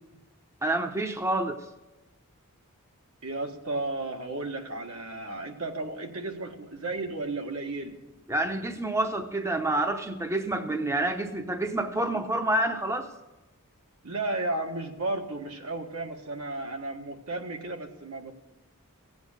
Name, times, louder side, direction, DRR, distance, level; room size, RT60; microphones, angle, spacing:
voice 1, 0.6-1.6 8.3-13.1, right 1 dB, 15° right, 6 dB, 0.7 m, -28 dB
voice 2, 3.2-8.0 14.0-18.3, right 2 dB, 75° right, 3 dB, 1.6 m, -33 dB
16.0 x 8.3 x 6.5 m, 1.0 s
head